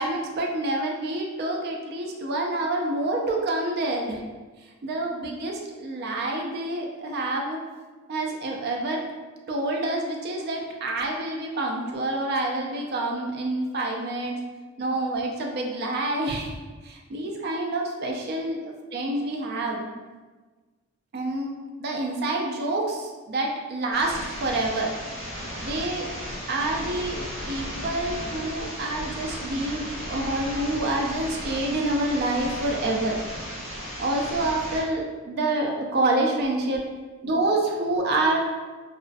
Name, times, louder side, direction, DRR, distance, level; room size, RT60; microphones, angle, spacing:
voice 1, 0.0-4.2 4.8-7.6 8.1-9.1 9.5-14.4 14.8-16.5 16.8-19.9 21.1-24.9 25.6-26.1 26.5-33.2 34.0-36.8 37.2-38.4, right 2 dB, 50° right, 1 dB, 0.3 m, -27 dB
sound 1, 23.9-34.8, equal, 25° right, 1.4 m, -35 dB
2.4 x 2.4 x 2.2 m, 1.3 s
head